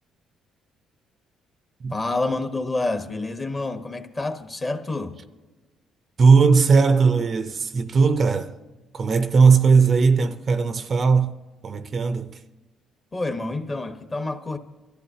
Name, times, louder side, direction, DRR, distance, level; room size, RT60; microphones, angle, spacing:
voice 1, 1.9-5.2 13.1-14.6, left 2 dB, 25° left, 1.1 m, -28 dB
voice 2, 6.2-8.6 8.9-11.3 11.6-12.4, right 5 dB, 35° right, 0.6 m, -18 dB
24.0 x 14.0 x 2.8 m
cardioid pair, 130°, 0 cm